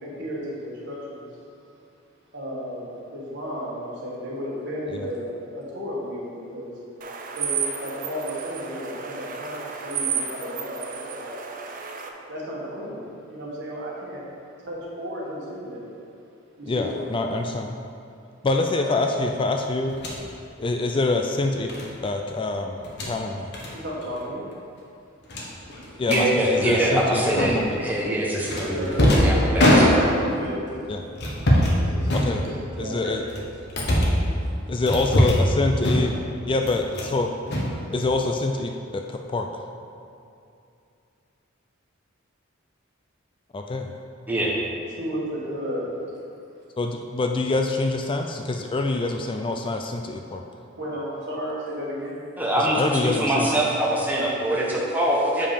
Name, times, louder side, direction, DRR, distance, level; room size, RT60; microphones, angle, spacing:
voice 1, 0.0-1.3 2.3-6.7 7.4-11.4 12.3-14.2 14.6-15.8 16.6-17.1 18.6-18.9 23.7-24.4 27.9-28.1 28.7-30.0 30.3-30.9 31.8-33.2 34.6-34.7 44.9-45.9 50.8-52.2, equal, 60° right, -5 dB, 1.8 m, -33 dB
sound 1, 7.0-12.1, right 7 dB, 40° right, 0.6 m, -32 dB
voice 2, 16.7-17.8 18.4-20.0 20.6-21.7 22.0-22.8 23.0-23.5 26.0-27.8 30.9-31.0 32.1-32.4 32.8-33.2 34.7-36.2 36.4-37.3 37.9-39.5 43.5-43.9 46.8-50.4 52.6-53.7, left 2 dB, 25° left, 4 dB, 0.3 m, -25 dB
sound 2, 19.9-20.2 21.7-21.9 22.8-23.1 23.5-23.7 24.0-24.2 24.5-24.6 25.3-26.3 27.4-27.8 28.5-30.3 31.2-31.8 32.1-32.8 33.3-34.2 34.9-35.5 35.8-36.3 36.6-37.2 37.5-38.3, equal, 55° left, 1.3 m, -22 dB
voice 3, 26.1-30.0 44.3-44.5 52.4-52.8 53.2-55.5, right 1 dB, 10° right, -5 dB, 1.0 m, -23 dB
7.5 x 5.2 x 5.1 m, 2.6 s
head